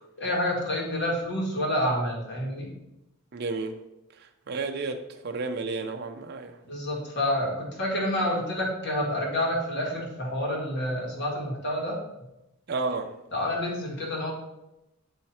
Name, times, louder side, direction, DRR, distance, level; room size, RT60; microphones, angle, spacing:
voice 1, 0.2-2.7 6.6-12.0 13.3-14.3, left 1 dB, 55° left, -2 dB, 1.8 m, -28 dB
voice 2, 3.3-3.8 4.2-6.6 12.7-13.1, right 3 dB, 50° right, 5 dB, 0.5 m, -32 dB
9.0 x 3.2 x 4.3 m, 0.93 s
head